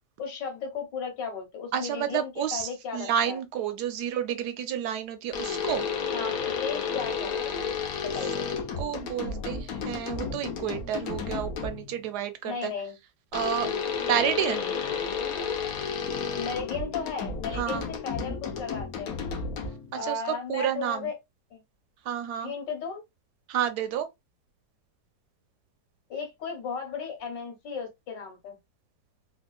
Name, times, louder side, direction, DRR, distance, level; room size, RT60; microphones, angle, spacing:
voice 1, 0.2-3.4 6.1-7.6 8.0-8.5 12.4-12.9 16.4-19.2 19.9-21.1 21.5-21.6 22.4-23.0 26.1-28.6, left 5 dB, 85° left, 1.8 m, -35 dB
voice 2, 1.7-5.9 8.8-12.7 13.3-13.7 14.1-14.7 17.5-17.8 19.9-20.2 20.5-21.1 22.0-22.5 23.5-24.1, right 9 dB, 75° right, 1.1 m, -30 dB
sound 1, 5.3-11.9 13.3-20.0, left 6 dB, 65° left, 1.1 m, -32 dB
3.6 x 2.4 x 2.3 m
omnidirectional pair, 1.9 m